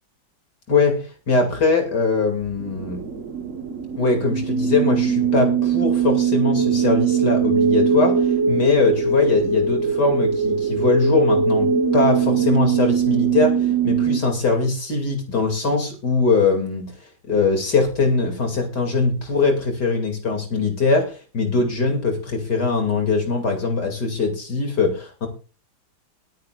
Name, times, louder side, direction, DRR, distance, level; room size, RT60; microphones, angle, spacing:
voice 1, 0.7-3.0 4.0-16.9 17.3-25.3, left 4 dB, 55° left, 4 dB, 3.1 m, -21 dB
sound 1, 2.5-14.2, right 6 dB, 45° right, 1.4 m, -21 dB
21.0 x 9.6 x 2.4 m, 0.34 s
omnidirectional pair, 2.2 m